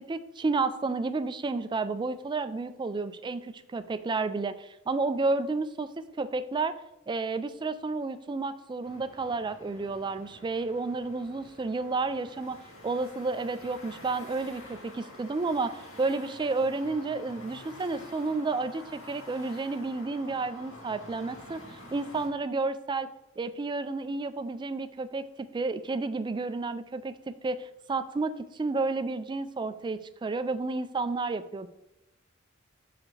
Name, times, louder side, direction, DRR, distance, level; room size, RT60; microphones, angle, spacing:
voice 1, 0.1-6.8 7.1-23.1 23.4-25.2 25.5-31.7, right 3 dB, 20° right, 12 dB, 0.3 m, -31 dB
sound 1, 8.8-22.3, left 1 dB, 75° left, 2.2 m, -48 dB
7.4 x 5.9 x 3.2 m, 0.91 s
head